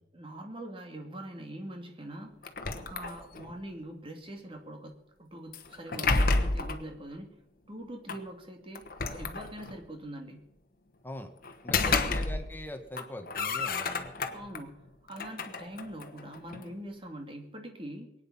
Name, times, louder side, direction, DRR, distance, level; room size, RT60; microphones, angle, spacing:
voice 1, 0.1-2.4 2.7-7.4 7.7-10.5 11.8-12.2 14.3-18.1, right 1 dB, 30° right, 4 dB, 2.4 m, -43 dB
sound 1, 2.4-3.6 5.5-6.9 8.1-8.2 8.8-9.8 11.4-12.7 12.9-14.6 15.1-16.7, left 3 dB, 55° left, 1.3 m, -31 dB
voice 2, 11.6-14.1, left 1 dB, 10° left, 5 dB, 1.5 m, -42 dB
23.0 x 9.4 x 5.6 m, 0.85 s
head